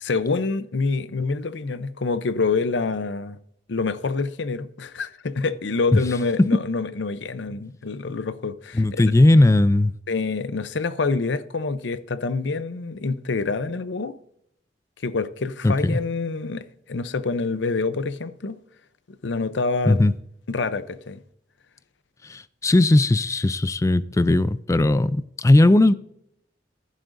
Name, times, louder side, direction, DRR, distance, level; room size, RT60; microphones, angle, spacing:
voice 1, 0.0-3.4 3.7-9.0 10.1-14.1 15.0-18.6 19.1-20.0 20.5-21.2, left 4 dB, 85° left, 0.6 m, -26 dB
voice 2, 8.7-9.9 15.6-16.0 19.9-20.1 22.3-25.9, left 2 dB, 15° left, 0.3 m, -18 dB
14.5 x 11.5 x 2.6 m
head